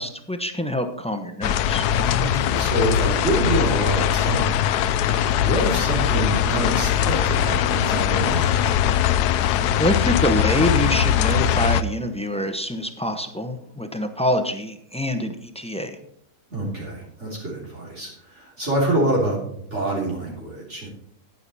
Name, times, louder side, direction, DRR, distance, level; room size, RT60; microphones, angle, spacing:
voice 1, 0.0-1.9 9.8-16.0, left 1 dB, 5° left, 7 dB, 0.5 m, -25 dB
sound 1, 1.4-11.8, left 10 dB, 85° left, 1.1 m, -21 dB
voice 2, 2.2-4.7 5.3-8.6 16.5-20.9, right 1 dB, 45° right, -5 dB, 3.5 m, -26 dB
10.0 x 9.7 x 4.2 m, 0.69 s
omnidirectional pair, 1.7 m